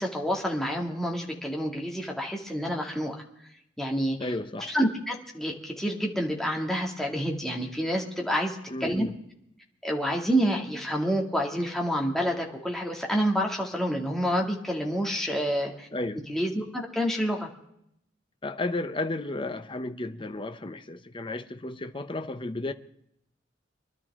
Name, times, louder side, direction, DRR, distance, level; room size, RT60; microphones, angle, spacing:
voice 1, 0.0-3.2 3.8-4.3 4.7-9.1 9.8-15.9 16.3-17.5, equal, ahead, 2.3 m, -28 dB
voice 2, 4.2-4.7 8.7-9.1 15.9-16.2 18.4-22.7, left 2 dB, 25° left, 0.8 m, -33 dB
24.5 x 12.0 x 3.7 m
head